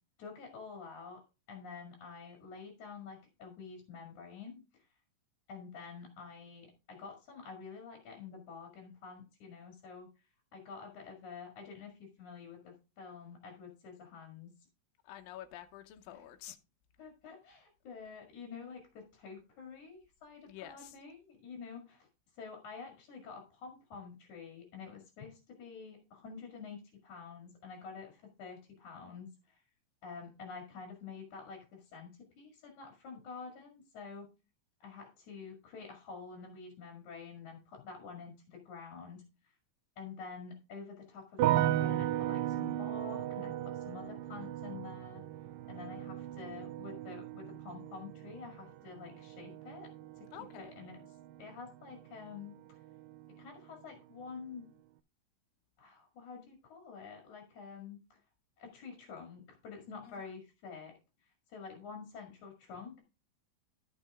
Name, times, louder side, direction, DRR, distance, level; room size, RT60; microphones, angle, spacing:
voice 1, 0.2-1.2 1.5-4.6 5.5-10.1 10.5-14.5 16.1-16.3 17.0-22.1 22.4-29.6 30.0-34.3 34.8-39.2 40.0-45.2 45.7-49.9 50.5-51.1 51.4-52.8 53.4-54.7 55.8-58.2 58.6-60.9 61.2-63.0, left 5 dB, 60° left, 3.3 m, -48 dB
voice 2, 15.1-16.6 20.5-20.9 50.3-50.7 60.1-60.2, left 12 dB, 80° left, 2.5 m, -48 dB
sound 1, 41.4-52.5 52.7-53.5, right 13 dB, 80° right, 2.4 m, -36 dB
13.5 x 5.8 x 3.5 m
omnidirectional pair, 4.1 m